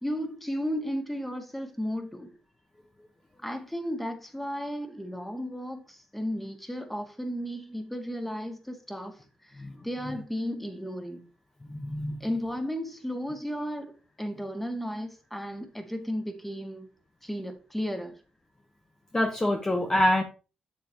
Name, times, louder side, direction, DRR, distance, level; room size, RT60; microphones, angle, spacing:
voice 1, 0.0-2.3 3.4-11.2 12.2-16.9 17.2-18.2, equal, 5° left, 2.0 m, -34 dB
voice 2, 11.8-12.2 19.1-20.2, left 1 dB, 20° left, 1.2 m, -25 dB
7.7 x 7.2 x 3.0 m
cardioid pair, 70°, 3 cm